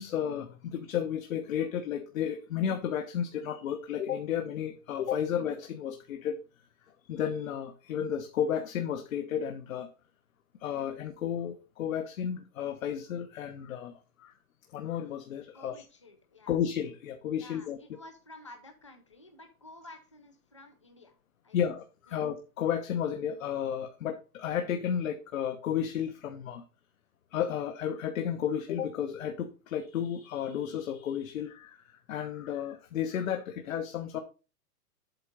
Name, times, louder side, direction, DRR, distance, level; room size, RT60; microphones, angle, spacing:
voice 1, 0.0-6.4 7.1-9.9 10.6-14.3 14.7-15.7 16.5-17.8 21.5-26.6 27.3-34.2, left 9 dB, 60° left, 5 dB, 1.0 m, -33 dB
voice 2, 15.5-16.6 17.4-21.2 21.4-21.6 22.1-22.2, left 2 dB, 20° left, 5 dB, 0.4 m, -52 dB
8.1 x 3.7 x 6.4 m, 0.32 s
hypercardioid pair, 175°, 46 cm